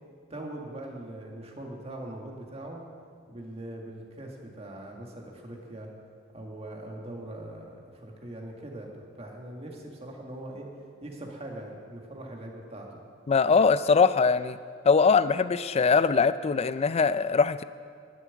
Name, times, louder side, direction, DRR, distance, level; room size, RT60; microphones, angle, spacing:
voice 1, 0.3-2.8 3.3-5.9 6.3-10.7 11.0-12.9, right 1 dB, 30° right, 0 dB, 1.8 m, -41 dB
voice 2, 13.3-14.6 14.8-17.6, left 5 dB, 30° left, 14 dB, 0.4 m, -22 dB
12.0 x 7.2 x 9.5 m, 2.1 s
head